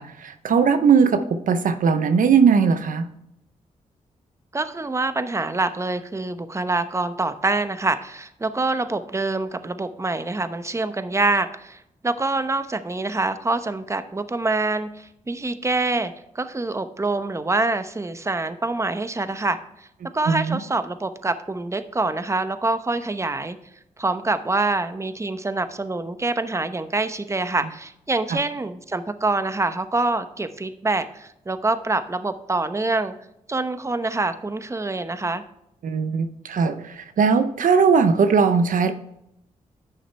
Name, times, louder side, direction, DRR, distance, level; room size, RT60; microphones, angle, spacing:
voice 1, 0.0-3.1 20.3-20.6 28.3-28.4 35.8-38.9, right 6 dB, 70° right, 10 dB, 0.7 m, -19 dB
voice 2, 4.5-19.9 20.1-23.6 24.0-33.1 33.5-35.4, right 2 dB, 20° right, 11 dB, 0.8 m, -25 dB
10.5 x 6.4 x 3.3 m, 0.79 s
supercardioid pair, 50°, 14 cm